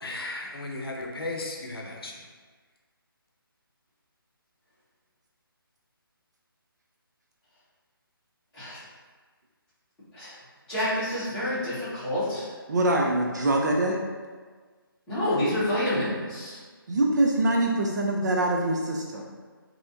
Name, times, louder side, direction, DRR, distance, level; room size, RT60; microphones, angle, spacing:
voice 1, 0.0-2.3, left 2 dB, 80° left, 0 dB, 0.6 m, -35 dB
voice 2, 10.7-12.5 15.1-16.6, left 1 dB, 5° left, -16 dB, 1.3 m, -28 dB
voice 3, 12.7-14.0 16.9-19.2, right 1 dB, 50° right, 0 dB, 0.4 m, -24 dB
3.1 x 2.7 x 2.6 m, 1.4 s
figure-of-eight pair, 160°, 12 cm